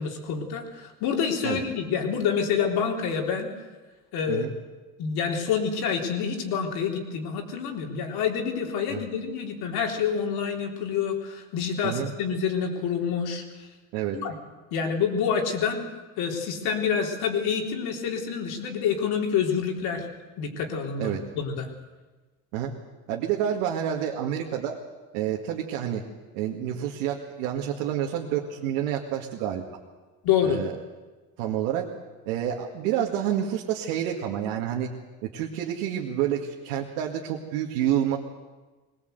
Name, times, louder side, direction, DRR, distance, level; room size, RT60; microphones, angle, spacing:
voice 1, 0.0-3.5 4.1-4.5 5.0-13.4 14.1-14.3 14.7-15.8 16.2-20.1 20.4-21.7 30.2-30.6, left 7 dB, 65° left, 2 dB, 3.8 m, -27 dB
voice 2, 23.1-24.8 25.1-26.0 26.3-29.6 30.4-30.7 31.4-31.9 32.3-34.9 35.2-38.2, right 10 dB, 85° right, -1 dB, 2.2 m, -28 dB
21.0 x 19.0 x 8.1 m, 1.3 s
supercardioid pair, 95°, 40 cm